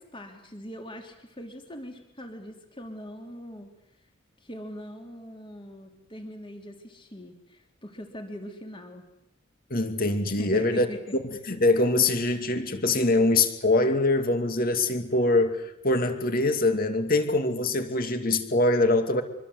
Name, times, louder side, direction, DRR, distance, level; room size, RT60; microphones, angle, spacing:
voice 1, 0.0-3.7 4.4-9.0 10.4-11.2, equal, 25° left, 4 dB, 3.3 m, -41 dB
voice 2, 9.7-10.9 11.2-19.2, left 2 dB, 50° left, 7 dB, 2.5 m, -23 dB
25.5 x 24.5 x 8.1 m, 0.82 s
head